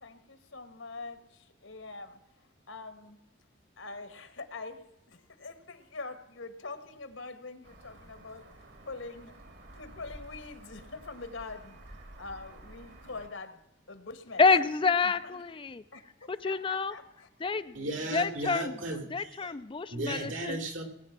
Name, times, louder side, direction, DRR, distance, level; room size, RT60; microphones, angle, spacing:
voice 1, 0.0-3.2 3.8-4.8 5.1-8.5 8.9-9.4 9.7-13.6 13.9-14.4 15.0-15.4 15.9-17.3 19.4-19.5, left 3 dB, 75° left, 10 dB, 1.6 m, -44 dB
sound 1, 7.6-13.3, right 1 dB, 60° right, 2.0 m, -51 dB
voice 2, 14.4-15.8 16.3-16.9 17.4-17.7 18.1-18.6 19.1-20.6, left 4 dB, 25° left, 12 dB, 0.4 m, -27 dB
voice 3, 17.7-19.5 19.9-20.8, right 2 dB, 75° right, 6 dB, 2.9 m, -35 dB
19.0 x 8.9 x 6.0 m, 0.90 s
head